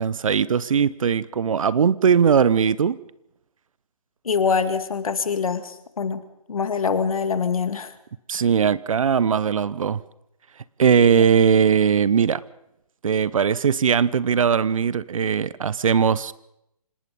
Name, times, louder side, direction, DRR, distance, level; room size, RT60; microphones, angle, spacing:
voice 1, 0.0-3.0 8.3-10.0 10.8-12.4 13.0-16.3, right 7 dB, 60° right, 19 dB, 0.9 m, -19 dB
voice 2, 4.2-6.2 6.5-7.9, left 6 dB, 65° left, 10 dB, 2.0 m, -24 dB
26.0 x 20.0 x 5.4 m, 0.82 s
figure-of-eight pair, 140°, 19 cm